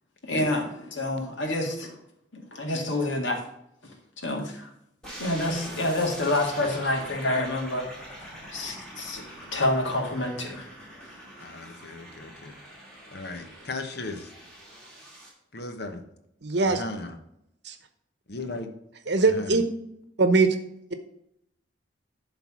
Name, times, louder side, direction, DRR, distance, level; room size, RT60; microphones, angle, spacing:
voice 1, 0.2-1.9 2.3-3.4 4.2-4.7 5.2-7.9 8.5-9.2 9.5-10.7, left 1 dB, 80° left, 2 dB, 1.9 m, -28 dB
sound 1, 5.0-15.3, equal, 5° left, 2.5 m, -44 dB
voice 2, 11.4-12.5 13.1-14.3 15.5-16.0 16.6-17.2 18.3-18.7 19.2-19.6, left 2 dB, 60° left, 6 dB, 1.1 m, -36 dB
voice 3, 16.4-16.8 17.6-17.8 19.1-19.6 20.2-20.6, right 3 dB, 60° right, 9 dB, 0.9 m, -21 dB
11.0 x 3.9 x 6.1 m, 0.78 s
head